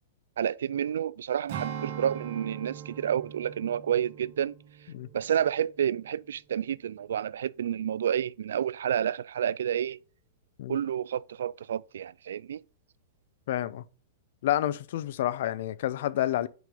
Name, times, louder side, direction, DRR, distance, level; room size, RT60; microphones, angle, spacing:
voice 1, 0.4-4.5 5.1-10.0 10.7-12.6, right 9 dB, 80° right, 0.3 m, -29 dB
Strum, 1.5-6.2 6.6-6.8, right 9 dB, 50° right, 2.2 m, -41 dB
voice 2, 13.5-13.8 14.4-16.5, left 13 dB, 65° left, 0.5 m, -29 dB
6.2 x 5.2 x 5.5 m
hypercardioid pair, 140°, 0 cm